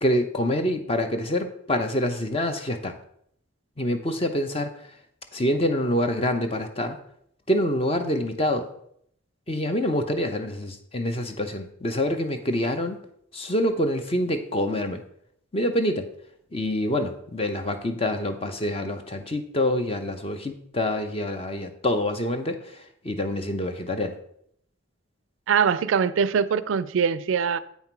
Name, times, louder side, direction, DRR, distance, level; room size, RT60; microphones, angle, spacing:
voice 1, 0.0-3.0 3.8-5.0 5.3-7.0 7.5-8.7 9.5-13.0 13.3-15.0 15.5-16.1 16.5-24.2, left 1 dB, 30° left, 0.7 m, -26 dB
voice 2, 25.5-27.6, right 6 dB, 70° right, 0.4 m, -22 dB
8.2 x 5.7 x 4.5 m
head